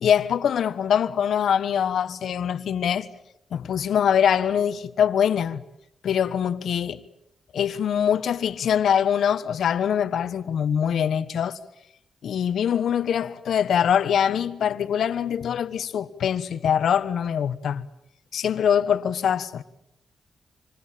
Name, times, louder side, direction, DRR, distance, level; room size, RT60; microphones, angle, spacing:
voice 1, 0.0-3.1 3.5-5.6 6.0-7.0 7.5-11.6 12.2-17.8 18.3-19.6, left 8 dB, 75° left, 1.2 m, -23 dB
27.0 x 26.0 x 7.6 m
cardioid pair, 60°, 0 cm